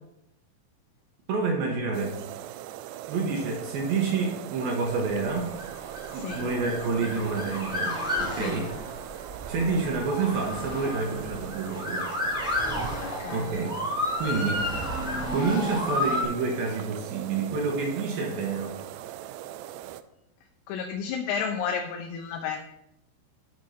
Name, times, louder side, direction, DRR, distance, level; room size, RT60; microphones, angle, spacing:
voice 1, 1.3-2.2 3.1-5.5 6.1-8.7 9.5-12.1 13.3-13.7 14.2-14.7 15.3-18.8, right 4 dB, 70° right, 2 dB, 2.5 m, -28 dB
sound 1, 1.9-20.0, right 12 dB, 85° right, 2.9 m, -40 dB
Motor vehicle (road) / Siren, 5.1-16.2, left 1 dB, 5° right, 0.7 m, -32 dB
voice 2, 13.0-13.5 20.7-22.6, left 6 dB, 80° left, 2 dB, 2.8 m, -32 dB
9.2 x 5.4 x 5.5 m, 0.83 s
omnidirectional pair, 5.2 m